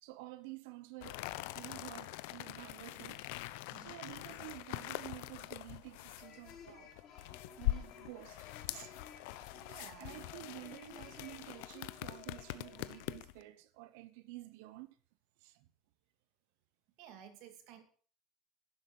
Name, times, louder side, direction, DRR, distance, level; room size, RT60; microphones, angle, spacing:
voice 1, 0.0-1.2 1.5-3.3 3.8-6.9 7.6-9.0 9.5-15.0 15.4-15.7, right 18 dB, 85° right, 1.1 m, -51 dB
sound 1, 1.0-13.4, left 17 dB, 85° left, 0.8 m, -43 dB
sound 2, 6.1-13.2, left 7 dB, 40° left, 4.1 m, -56 dB
voice 2, 9.7-10.2 17.0-17.8, right 9 dB, 60° right, 2.6 m, -54 dB
11.5 x 10.5 x 6.3 m
cardioid pair, 175°, 0 cm